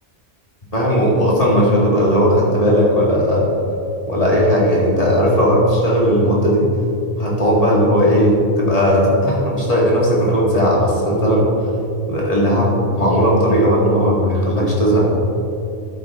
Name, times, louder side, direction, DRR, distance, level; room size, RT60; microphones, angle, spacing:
voice 1, 0.7-3.5 4.1-6.7 7.2-11.5 12.1-15.0, equal, 35° left, -5 dB, 2.1 m, -16 dB
11.0 x 9.1 x 3.6 m, 2.6 s
omnidirectional pair, 1.1 m